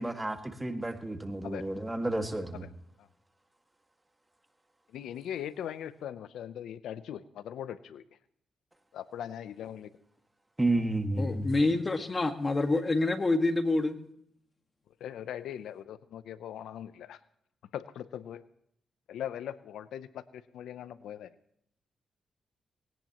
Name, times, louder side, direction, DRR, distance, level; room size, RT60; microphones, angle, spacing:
voice 1, 0.0-2.6 10.6-11.5, right 2 dB, 15° right, 6 dB, 1.8 m, -31 dB
voice 2, 4.9-8.0 8.9-9.9 15.0-17.2 17.7-18.4 19.1-21.3, left 10 dB, 90° left, 14 dB, 0.6 m, -40 dB
voice 3, 11.2-14.0, left 2 dB, 30° left, 6 dB, 1.7 m, -27 dB
19.5 x 17.5 x 3.0 m, 0.72 s
cardioid pair, 70°, 0 cm